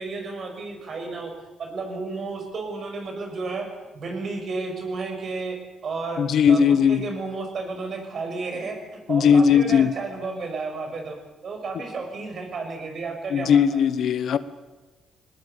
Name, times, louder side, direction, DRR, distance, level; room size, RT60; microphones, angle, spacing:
voice 1, 0.0-1.3 1.6-3.7 3.9-11.2 11.4-13.8, right 3 dB, 50° right, 6.1 m, -32 dB
voice 2, 6.2-7.1 9.1-9.9 13.3-14.4, left 7 dB, 65° left, 1.2 m, -18 dB
21.0 x 19.5 x 8.3 m
cardioid pair, 90°, 0 cm